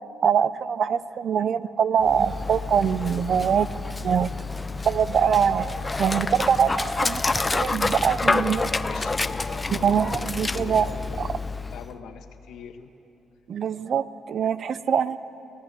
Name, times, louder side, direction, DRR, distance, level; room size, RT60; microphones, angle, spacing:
voice 1, 0.2-3.7 4.0-4.3 4.8-8.7 9.7-10.9 11.2-11.4 13.5-15.2, right 7 dB, 55° right, 15 dB, 0.7 m, -23 dB
Dog, 2.0-11.9, left 3 dB, 20° left, 0.7 m, -28 dB
voice 2, 8.8-12.9, left 6 dB, 80° left, 7 dB, 1.5 m, -42 dB
24.5 x 18.5 x 8.3 m, 3.0 s
cardioid pair, 90°, 0 cm